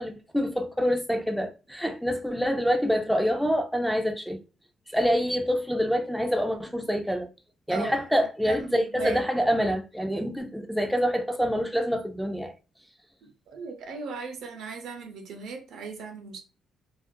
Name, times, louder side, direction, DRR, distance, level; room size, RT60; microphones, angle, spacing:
voice 1, 0.0-4.4 4.9-7.3 7.7-12.5, equal, ahead, 0.4 m, -26 dB
voice 2, 7.7-8.0 8.4-9.2 13.2-16.4, right 3 dB, 80° right, 0.6 m, -37 dB
2.4 x 2.1 x 2.5 m
cardioid pair, 90°, 0 cm